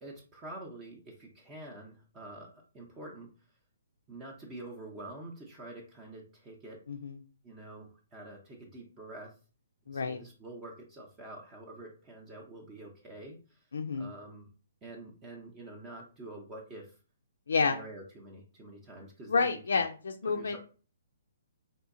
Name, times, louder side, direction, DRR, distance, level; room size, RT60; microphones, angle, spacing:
voice 1, 0.0-3.3 4.1-6.8 7.4-9.3 9.9-13.6 13.9-14.5 14.8-16.9 17.6-19.6 20.2-20.6, right 2 dB, 20° right, 0 dB, 0.7 m, -47 dB
voice 2, 6.9-7.2 9.9-10.2 13.7-14.1 17.5-17.8 19.3-20.6, left 4 dB, 65° left, 4 dB, 0.4 m, -29 dB
3.6 x 2.7 x 2.5 m, 0.36 s
figure-of-eight pair, 125°, 0 cm